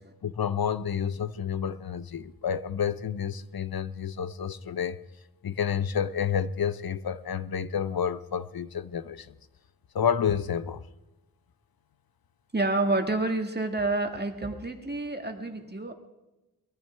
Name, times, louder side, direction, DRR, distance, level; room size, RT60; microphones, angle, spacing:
voice 1, 0.2-5.0 5.4-9.3 9.9-10.8, left 7 dB, 80° left, 0.7 m, -29 dB
voice 2, 12.5-15.9, right 2 dB, 30° right, 1.7 m, -28 dB
22.0 x 14.0 x 3.3 m
wide cardioid pair, 75°, 36 cm